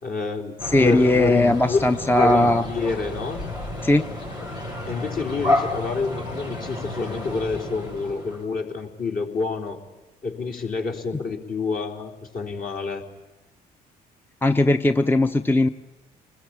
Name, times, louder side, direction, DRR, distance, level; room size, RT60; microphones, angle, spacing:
voice 1, 0.0-1.9 2.2-3.4 4.9-9.8 10.2-13.0, left 4 dB, 45° left, 3 dB, 3.8 m, -27 dB
sound 1, 0.6-8.4, left 2 dB, 90° left, 7.9 m, -30 dB
voice 2, 0.6-2.6 3.8-4.1 14.4-15.7, left 1 dB, 10° left, 9 dB, 0.8 m, -19 dB
29.0 x 20.5 x 8.9 m, 1.0 s
hypercardioid pair, 45°, 20 cm